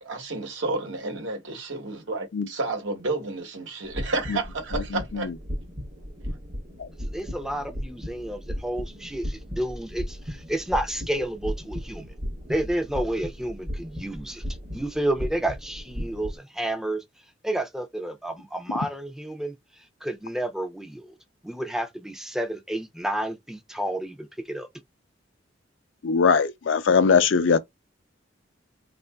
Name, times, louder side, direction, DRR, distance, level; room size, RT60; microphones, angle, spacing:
voice 1, 0.0-5.3, right 3 dB, 75° right, 1.0 m, -31 dB
sound 1, 3.9-16.4, equal, 35° right, 0.8 m, -36 dB
voice 2, 4.9-5.3 6.8-6.9 26.0-27.6, left 5 dB, 80° left, 0.5 m, -21 dB
voice 3, 7.0-12.1 12.5-14.4 14.7-17.0 17.4-19.5 20.0-21.2 21.4-24.7, right 1 dB, 5° right, 0.4 m, -30 dB
3.5 x 2.5 x 2.2 m
head